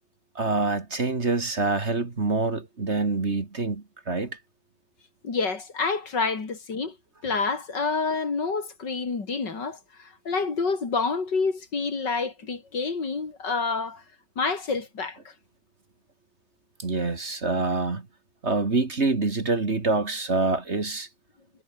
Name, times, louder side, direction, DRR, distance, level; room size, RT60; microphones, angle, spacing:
voice 1, 0.4-4.4 16.8-18.1 18.4-21.1, right 3 dB, 40° right, 2.5 m, -26 dB
voice 2, 5.2-7.0 7.2-14.0 14.4-15.2, left 4 dB, 75° left, 3.8 m, -28 dB
omnidirectional pair, 1.9 m